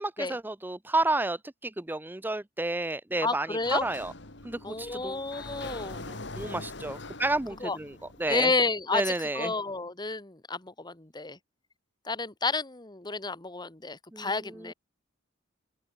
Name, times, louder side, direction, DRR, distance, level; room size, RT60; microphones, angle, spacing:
voice 1, 0.0-4.1 4.4-5.2 6.1-7.9 8.2-8.5 8.9-9.5 14.1-14.3, right 2 dB, 10° right, 0.5 m, -31 dB
voice 2, 3.2-3.9 4.6-6.1 7.6-7.8 8.3-11.4 12.1-14.7, left 3 dB, 20° left, 1.9 m, -31 dB
Sliding door, 3.6-8.6, left 2 dB, 65° left, 3.9 m, -43 dB
open air
head